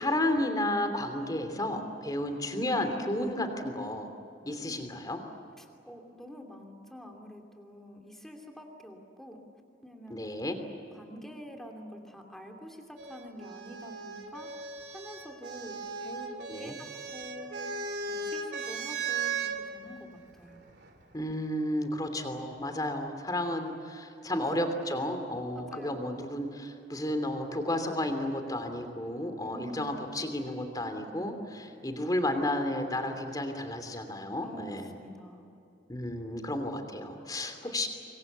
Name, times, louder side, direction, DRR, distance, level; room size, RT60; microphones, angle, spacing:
voice 1, 0.0-4.1 4.4-5.2 10.1-10.6 16.5-16.8 21.1-34.9 35.9-37.9, left 1 dB, 20° left, 6 dB, 3.0 m, -32 dB
voice 2, 5.6-9.4 9.8-10.2 10.9-14.5 14.9-17.7 18.1-20.6 24.3-24.7 25.7-26.1 29.4-30.1 34.4-35.5, equal, ahead, 2 dB, 2.8 m, -46 dB
sound 1, 13.0-19.6 20.7-21.3, right 5 dB, 65° right, 2.9 m, -37 dB
26.0 x 22.5 x 8.2 m, 2.9 s
head